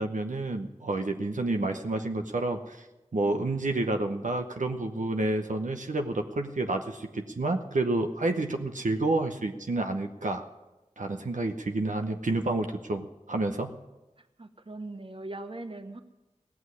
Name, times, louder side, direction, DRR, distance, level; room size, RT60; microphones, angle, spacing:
voice 1, 0.0-2.9 3.1-10.4 11.0-13.7, right 2 dB, 75° right, 5 dB, 0.8 m, -29 dB
voice 2, 14.4-16.0, right 2 dB, 45° right, 9 dB, 1.0 m, -40 dB
17.0 x 6.3 x 9.5 m, 1.0 s
wide cardioid pair, 45°, 13 cm